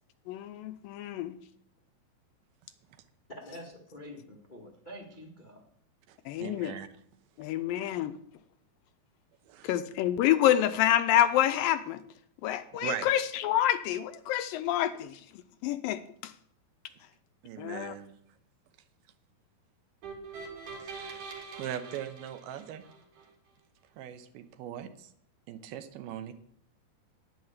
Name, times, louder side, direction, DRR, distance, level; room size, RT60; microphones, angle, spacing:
voice 1, 0.3-1.4 6.3-6.7 7.4-8.1 9.6-12.0 12.4-15.2 15.6-16.3 17.6-17.9, left 12 dB, 80° left, 11 dB, 2.2 m, -27 dB
voice 2, 3.4-5.6, equal, 45° left, 0 dB, 0.6 m, -47 dB
voice 3, 6.1-6.9 9.5-9.7 12.8-13.1 17.4-18.1 20.8-21.3 21.6-22.8 24.0-25.1 25.5-26.3, right 10 dB, 85° right, 10 dB, 2.8 m, -40 dB
sound 1, 20.0-23.3, right 4 dB, 60° right, 3.3 m, -44 dB
10.5 x 9.5 x 7.1 m, 0.65 s
omnidirectional pair, 4.3 m